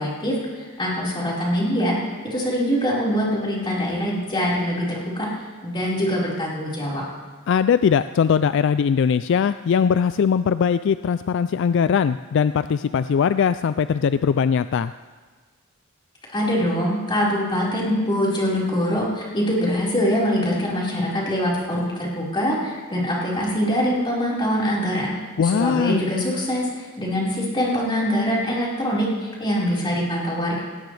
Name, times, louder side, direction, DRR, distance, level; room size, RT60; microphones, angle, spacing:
voice 1, 0.0-1.9 2.2-5.3 5.6-7.0 16.3-25.1 25.4-30.6, equal, 25° left, -6 dB, 4.5 m, -23 dB
voice 2, 7.5-14.9 25.4-26.0, left 7 dB, 60° left, 13 dB, 0.3 m, -20 dB
18.5 x 17.0 x 3.3 m, 1.4 s
head